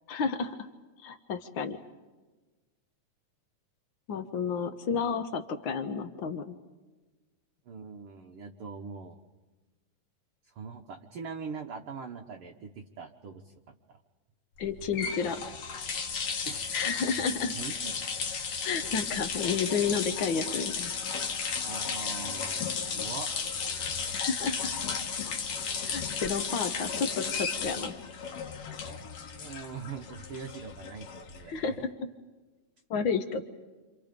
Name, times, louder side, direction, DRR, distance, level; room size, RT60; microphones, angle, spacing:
voice 1, 0.1-0.5 1.0-1.8 4.1-6.4 14.6-15.4 16.7-17.5 18.6-20.9 24.1-24.7 25.9-27.9 31.5-31.7 32.9-33.4, left 6 dB, 85° left, 8 dB, 1.0 m, -31 dB
voice 2, 7.7-9.2 10.5-13.5 13.9-14.0 16.4-16.8 17.2-18.0 21.6-23.3 29.4-31.9, right 5 dB, 65° right, 3 dB, 1.4 m, -42 dB
sound 1, 14.6-31.7, left 6 dB, 55° left, 2.1 m, -34 dB
29.5 x 27.0 x 5.2 m, 1.2 s
omnidirectional pair, 3.8 m